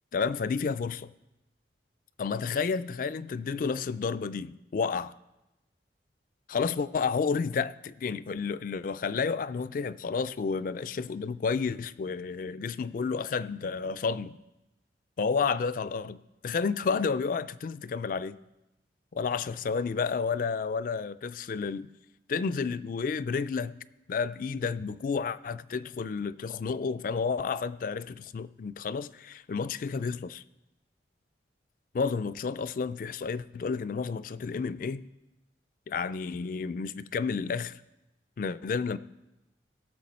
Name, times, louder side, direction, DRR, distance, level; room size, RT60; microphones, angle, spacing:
voice 1, 0.1-1.1 2.2-5.1 6.5-14.4 15.2-16.2 16.4-18.4 19.1-21.9 22.3-23.7 24.1-30.4 31.9-35.0 35.9-37.8 38.4-39.0, left 5 dB, 45° left, 15 dB, 0.3 m, -31 dB
17.0 x 6.7 x 4.2 m, 0.97 s
head